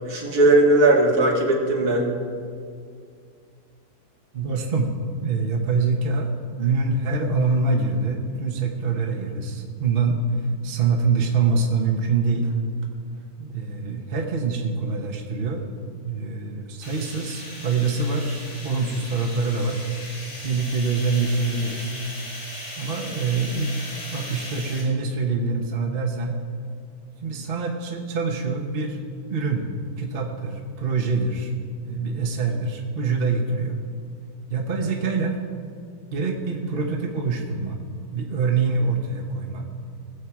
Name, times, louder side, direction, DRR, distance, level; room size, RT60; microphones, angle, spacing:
voice 1, 0.0-2.1, right 2 dB, 65° right, -1 dB, 2.3 m, -18 dB
voice 2, 4.3-4.9 5.2-12.6 13.4-15.7 16.0-19.8 20.4-21.9 22.7-23.8 24.1-26.3 27.2-29.0 29.3-29.6 30.0-31.5 31.8-33.8 34.5-35.4 36.1-37.8 38.1-39.7, right 4 dB, 40° right, 1 dB, 1.1 m, -25 dB
sound 1, 16.8-24.8, left 1 dB, 90° left, 4.2 m, -38 dB
19.5 x 7.6 x 4.7 m, 2.2 s
omnidirectional pair, 1.8 m